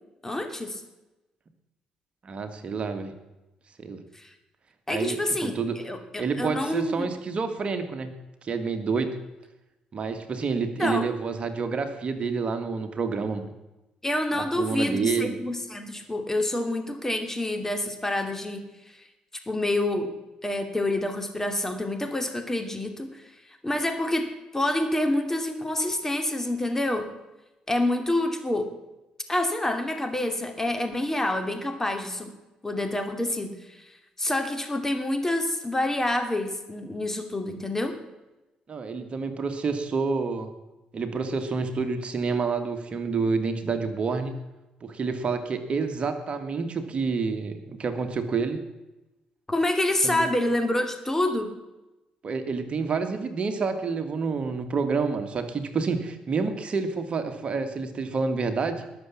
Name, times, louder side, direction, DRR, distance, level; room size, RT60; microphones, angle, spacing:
voice 1, 0.2-0.8 4.1-4.3 4.9-5.6 5.8-7.1 10.8-11.1 14.0-19.0 19.5-20.1 20.4-27.1 27.7-28.7 29.3-32.3 32.6-38.0 49.5-51.5, left 1 dB, 15° left, 6 dB, 2.7 m, -27 dB
voice 2, 2.2-3.1 3.8-4.0 4.9-5.8 6.2-8.1 8.4-9.2 9.9-13.5 14.3-15.4 38.7-40.5 40.9-44.3 44.8-48.6 50.0-50.3 52.2-58.8, right 4 dB, 45° right, 7 dB, 1.8 m, -28 dB
20.0 x 7.2 x 7.3 m, 1.0 s
supercardioid pair, 60°, 3 cm